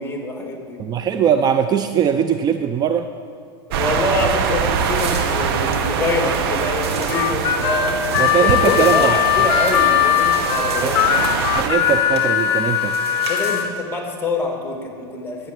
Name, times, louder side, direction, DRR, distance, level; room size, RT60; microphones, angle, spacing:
voice 1, 0.0-0.8 3.7-11.2 13.3-15.5, left 3 dB, 15° left, 2 dB, 2.4 m, -25 dB
voice 2, 0.8-3.1 8.2-9.1 10.8-10.9 11.5-13.0, right 8 dB, 30° right, 8 dB, 0.5 m, -20 dB
sound 1, 3.7-11.7, right 6 dB, 65° right, 1.2 m, -23 dB
sound 2, 4.6-13.6, right 4 dB, 90° right, 2.3 m, -35 dB
Harmonica, 7.1-13.7, left 10 dB, 45° left, 1.1 m, -19 dB
12.0 x 7.7 x 8.2 m, 2.1 s
hypercardioid pair, 105°, 14 cm